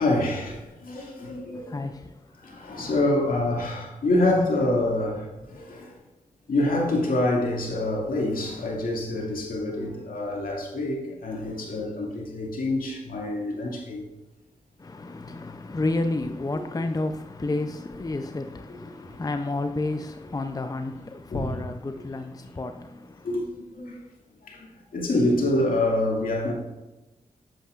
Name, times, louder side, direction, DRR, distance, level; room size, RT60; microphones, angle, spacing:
voice 1, 0.0-1.8 2.4-5.9 6.5-14.0 21.3-21.5 23.2-23.9 24.4-24.7 24.9-26.5, left 1 dB, 65° left, 2.2 m, -26 dB
voice 2, 1.5-2.2 14.8-23.3, left 2 dB, 25° left, 0.5 m, -31 dB
8.5 x 7.7 x 2.5 m
supercardioid pair, 45°, 16 cm